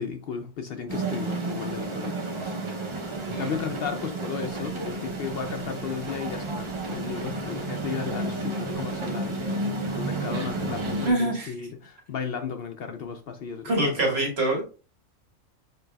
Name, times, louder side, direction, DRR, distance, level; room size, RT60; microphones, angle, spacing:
voice 1, 0.0-2.5 3.4-14.3, left 6 dB, 60° left, 0.7 m, -35 dB
sound 1, 0.9-11.1, right 2 dB, 30° right, 0.6 m, -31 dB
voice 2, 11.0-11.5 13.6-14.6, right 2 dB, 55° right, 1.7 m, -25 dB
6.7 x 3.2 x 2.3 m
omnidirectional pair, 1.3 m